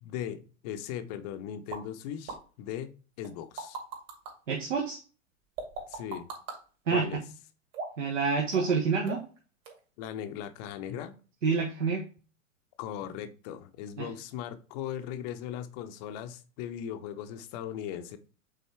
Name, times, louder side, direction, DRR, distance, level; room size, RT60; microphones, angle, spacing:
voice 1, 0.0-2.9 3.2-3.8 5.9-6.3 6.9-7.2 10.0-11.2 12.8-18.2, left 10 dB, 30° left, 10 dB, 0.7 m, -38 dB
sound 1, 1.7-1.8 2.3-2.4 3.2-4.3 5.6-6.6 7.7-8.1 8.5-8.8 9.1-9.4 9.7-9.8, right 4 dB, 35° right, 2.4 m, -38 dB
voice 2, 4.5-5.0 6.9-7.2 8.0-9.2 11.4-12.0 14.0-14.1, right 5 dB, 65° right, 0 dB, 1.3 m, -27 dB
8.0 x 4.2 x 3.4 m, 0.36 s
figure-of-eight pair, 100°, 41 cm